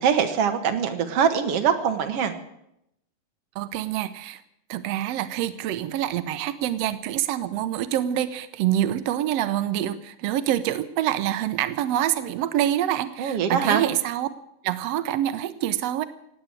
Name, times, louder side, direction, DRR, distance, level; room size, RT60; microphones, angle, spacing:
voice 1, 0.0-2.3 13.2-13.9, right 7 dB, 55° right, 6 dB, 2.0 m, -23 dB
voice 2, 3.5-4.4 4.7-14.3 14.6-16.0, right 12 dB, 90° right, 12 dB, 1.4 m, -26 dB
17.5 x 9.0 x 9.0 m, 0.80 s
omnidirectional pair, 3.9 m